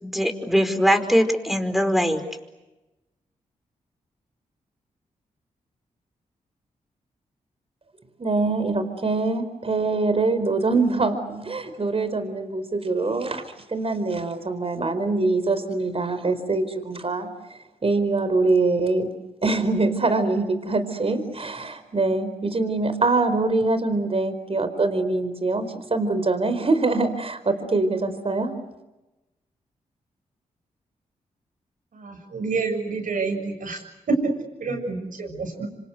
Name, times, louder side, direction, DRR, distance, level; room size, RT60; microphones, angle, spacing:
voice 1, 0.0-2.2, equal, ahead, 8 dB, 4.9 m, -21 dB
voice 2, 8.2-13.4 13.7-19.1 19.4-28.5, right 3 dB, 45° right, 10 dB, 4.7 m, -24 dB
voice 3, 31.9-33.8 34.6-35.7, right 4 dB, 70° right, 5 dB, 7.3 m, -29 dB
27.0 x 26.0 x 8.2 m, 1.0 s
cardioid pair, 50°, 14 cm